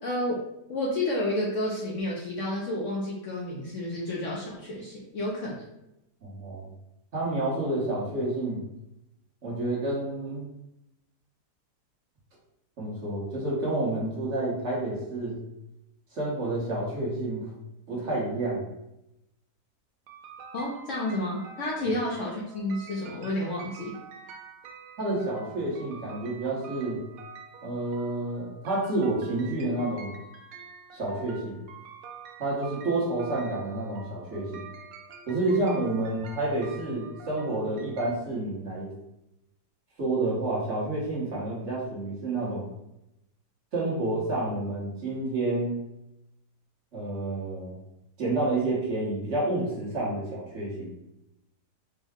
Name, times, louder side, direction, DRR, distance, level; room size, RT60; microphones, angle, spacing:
voice 1, 0.0-0.4 0.7-5.6 20.5-24.0, left 1 dB, 60° left, -3 dB, 0.8 m, -30 dB
voice 2, 6.2-6.7 7.1-8.6 9.4-10.5 12.8-15.4 16.1-17.5 17.9-18.7 25.0-27.0 27.6-30.1 30.9-31.6 32.4-34.7 35.3-38.9 40.0-42.7 43.7-45.8 46.9-47.8 48.2-50.9, right 2 dB, 50° right, -5 dB, 1.3 m, -29 dB
sound 1, 20.1-38.2, right 5 dB, 70° right, 0.9 m, -47 dB
4.5 x 2.2 x 3.5 m, 0.87 s
omnidirectional pair, 1.7 m